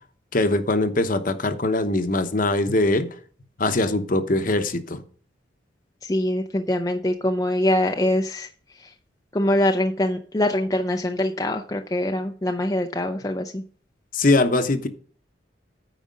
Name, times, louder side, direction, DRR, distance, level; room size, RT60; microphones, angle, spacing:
voice 1, 0.3-3.1 3.6-5.0 14.1-14.9, left 2 dB, 45° left, 0.9 m, -22 dB
voice 2, 6.0-8.5 8.8-8.9 9.3-13.6, left 1 dB, 20° left, 0.5 m, -23 dB
9.2 x 4.9 x 6.3 m
head